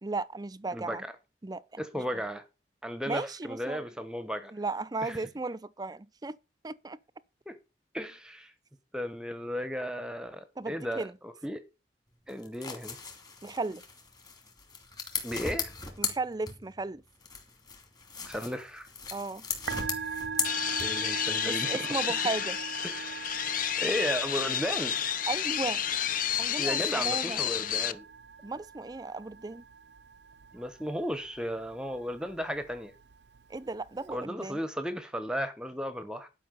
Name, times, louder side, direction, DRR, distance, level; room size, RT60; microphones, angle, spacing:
voice 1, 0.0-1.0 1.4-2.2 3.1-3.9 4.5-6.4 6.6-7.0 10.6-11.2 13.4-13.8 16.0-17.0 19.1-19.4 21.5-22.6 25.3-25.8 26.4-27.4 28.4-29.6 33.5-34.6, right 3 dB, 20° right, 0.5 m, -35 dB
voice 2, 0.7-1.1 1.8-2.4 2.8-4.5 5.0-5.3 7.5-7.6 7.9-8.5 8.9-11.6 12.3-13.0 15.2-15.7 18.2-18.9 20.8-21.9 22.8-23.3 23.8-24.9 26.6-28.1 30.5-32.9 34.1-36.3, equal, 5° right, 0.9 m, -35 dB
sound 1, 12.3-16.9 17.2-21.2, left 5 dB, 25° left, 2.5 m, -37 dB
Musical instrument, 19.5-34.2, right 5 dB, 75° right, 0.5 m, -42 dB
sound 2, 20.4-27.9, left 9 dB, 50° left, 0.7 m, -30 dB
11.5 x 5.5 x 6.8 m
head